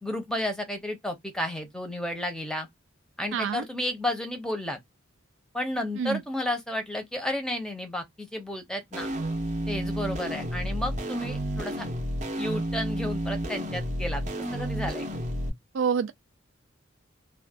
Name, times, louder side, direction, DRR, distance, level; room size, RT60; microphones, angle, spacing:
voice 1, 0.0-2.7 3.2-4.8 5.5-9.1 9.7-11.9 12.4-14.2 14.5-15.0, left 1 dB, 5° left, 0.7 m, -32 dB
voice 2, 3.3-3.6 6.0-6.2 15.7-16.1, right 6 dB, 65° right, 0.4 m, -27 dB
sound 1, 8.9-15.5, right 1 dB, 35° right, 0.7 m, -31 dB
2.4 x 2.2 x 3.4 m
head